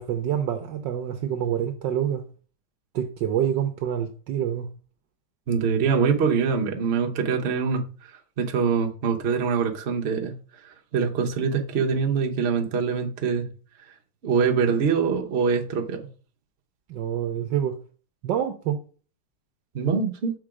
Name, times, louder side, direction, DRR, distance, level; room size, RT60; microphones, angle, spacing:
voice 1, 0.0-2.2 2.9-4.7 16.9-17.8 18.2-18.8, right 9 dB, 65° right, 1.2 m, -27 dB
voice 2, 5.5-7.8 8.4-10.4 10.9-13.5 14.2-16.1 19.7-20.3, right 6 dB, 50° right, 0.8 m, -24 dB
6.4 x 3.8 x 4.8 m
omnidirectional pair, 2.4 m